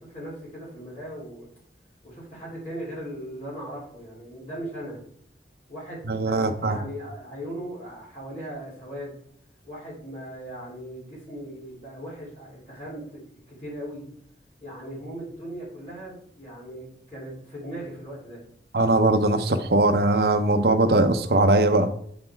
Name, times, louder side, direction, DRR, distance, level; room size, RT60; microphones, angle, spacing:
voice 1, 0.0-1.5 2.0-5.0 5.7-9.2 9.6-14.0 14.6-18.4, right 1 dB, 40° left, -8 dB, 3.2 m, -38 dB
voice 2, 6.1-6.8 18.7-21.9, right 2 dB, 65° right, 8 dB, 0.7 m, -20 dB
8.7 x 4.2 x 4.4 m, 0.67 s
head